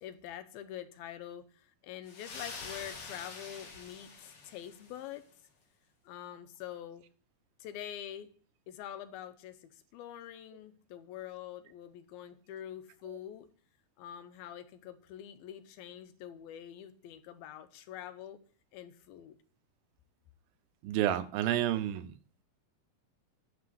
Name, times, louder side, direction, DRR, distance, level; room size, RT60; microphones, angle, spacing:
voice 1, 0.0-5.2 6.0-7.0 7.6-8.3 8.7-13.5 14.0-18.4 18.7-19.4, left 10 dB, 85° left, 2.7 m, -45 dB
sound 1, 2.1-5.1, left 4 dB, 65° left, 3.6 m, -46 dB
voice 2, 20.8-22.1, right 12 dB, 85° right, 2.6 m, -30 dB
9.9 x 4.8 x 7.7 m
omnidirectional pair, 4.2 m